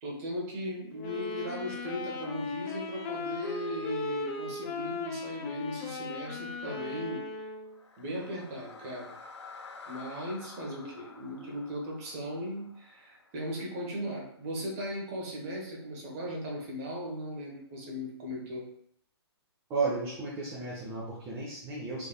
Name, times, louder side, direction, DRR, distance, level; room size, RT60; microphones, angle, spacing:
voice 1, 0.0-7.2 8.0-9.1 9.9-18.6, equal, 35° right, -2 dB, 1.1 m, -37 dB
sound 1, 0.9-7.8, left 3 dB, 20° left, 0.4 m, -37 dB
sound 2, 7.7-13.8, left 4 dB, 80° left, 0.6 m, -50 dB
voice 2, 19.7-22.1, right 4 dB, 20° right, -6 dB, 0.6 m, -33 dB
3.4 x 3.3 x 2.3 m, 0.66 s
figure-of-eight pair, 135°, 14 cm